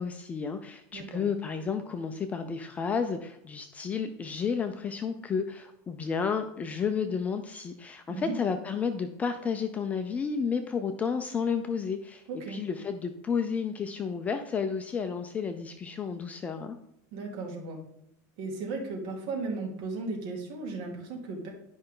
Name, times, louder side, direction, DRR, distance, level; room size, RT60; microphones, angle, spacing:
voice 1, 0.0-16.8, left 6 dB, 15° left, 6 dB, 0.4 m, -31 dB
voice 2, 0.9-1.2 8.1-8.4 12.3-12.7 17.1-17.8 18.4-21.5, right 3 dB, 60° right, -1 dB, 2.8 m, -36 dB
11.0 x 5.4 x 3.8 m, 0.77 s
supercardioid pair, 165°, 9 cm